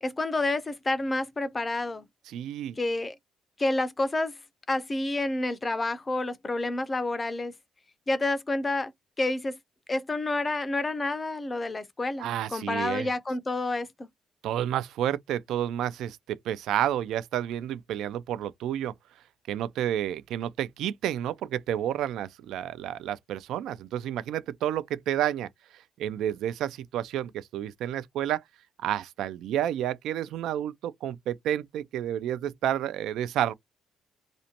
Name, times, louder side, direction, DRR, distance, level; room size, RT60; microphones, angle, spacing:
voice 1, 0.0-2.1 2.8-3.1 3.6-4.3 4.7-7.5 8.1-8.9 9.2-9.6 9.9-14.1, left 2 dB, 20° left, 0.4 m, -29 dB
voice 2, 2.3-2.8 12.2-13.1 14.4-18.9 19.5-28.4 28.8-33.5, right 11 dB, 75° right, 0.3 m, -30 dB
2.5 x 2.1 x 2.7 m
cardioid pair, 110°, 0 cm